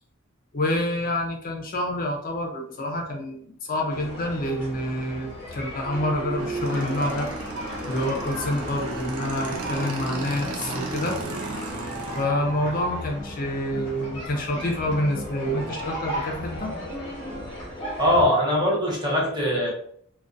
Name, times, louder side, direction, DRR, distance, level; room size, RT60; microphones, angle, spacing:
voice 1, 0.5-7.3 7.9-11.2 12.1-16.7, left 1 dB, 40° left, 1 dB, 0.5 m, -27 dB
sound 1, 3.9-18.3, equal, 25° left, 1.0 m, -35 dB
Motorcycle / Engine, 6.4-12.2, right 2 dB, 85° right, 0.5 m, -34 dB
voice 2, 18.0-19.7, left 1 dB, 20° right, -2 dB, 0.6 m, -21 dB
2.4 x 2.2 x 2.4 m, 0.63 s
head